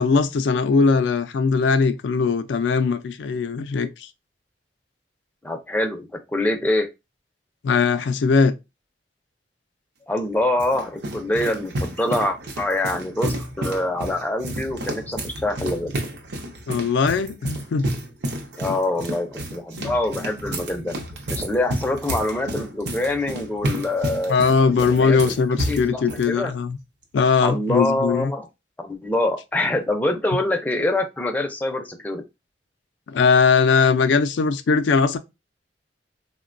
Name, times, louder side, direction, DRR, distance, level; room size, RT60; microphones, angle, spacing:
voice 1, 0.0-4.1 7.6-8.5 16.7-17.9 18.7-18.8 19.8-20.3 24.3-26.8 27.1-28.3 33.1-35.2, left 5 dB, 80° left, 0.3 m, -20 dB
voice 2, 5.4-6.9 10.1-15.9 18.6-20.9 21.3-24.4 24.9-25.2 25.7-26.5 27.4-28.4 28.8-32.2, left 1 dB, 10° left, 0.4 m, -25 dB
sound 1, 10.2-26.3, right 1 dB, 70° right, 0.6 m, -31 dB
3.7 x 2.1 x 2.4 m
head